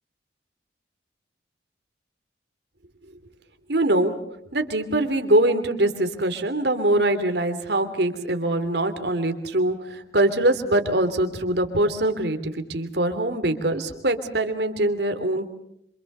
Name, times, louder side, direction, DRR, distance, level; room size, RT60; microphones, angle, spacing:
voice 1, 3.7-4.1 4.5-15.5, right 1 dB, 65° right, 7 dB, 3.0 m, -23 dB
27.0 x 26.0 x 6.7 m, 0.74 s
head